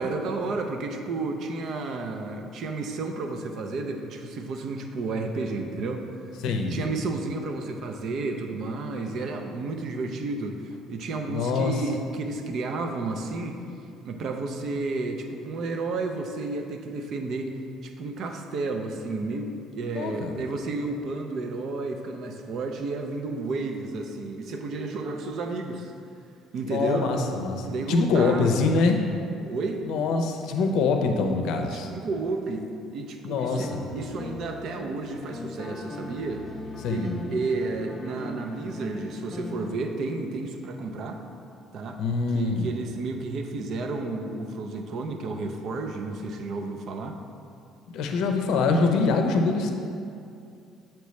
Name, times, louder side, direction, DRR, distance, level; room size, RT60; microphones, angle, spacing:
voice 1, 0.0-6.1 6.7-13.6 14.0-17.5 17.8-25.9 26.5-27.1 27.6-28.7 29.4-29.9 31.6-36.5 36.9-41.2 41.7-42.0 42.3-47.2, right 3 dB, 60° right, 4 dB, 0.5 m, -32 dB
voice 2, 6.4-6.8 11.3-11.7 19.9-20.3 26.6-29.0 29.8-31.9 33.2-33.7 36.8-37.2 42.0-42.7 47.9-49.7, left 4 dB, 70° left, 4 dB, 0.6 m, -24 dB
sound 1, 33.6-39.7, left 2 dB, 15° left, 0.5 m, -39 dB
7.0 x 4.4 x 3.2 m, 2.4 s
cardioid pair, 115°, 0 cm